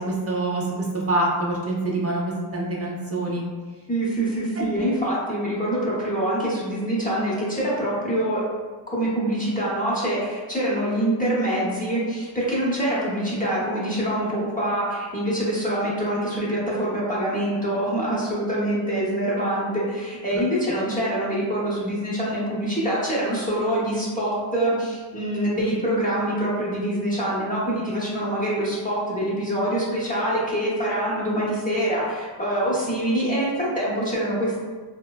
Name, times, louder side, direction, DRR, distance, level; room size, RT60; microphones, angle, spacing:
voice 1, 0.1-0.6 0.9-3.4 4.6-4.7 20.3-20.4, right 2 dB, 30° right, -3 dB, 0.7 m, -25 dB
voice 2, 3.9-8.4 8.9-34.6, right 1 dB, 15° left, -7 dB, 0.8 m, -25 dB
3.1 x 2.1 x 2.2 m, 1.4 s
cardioid pair, 75°, 49 cm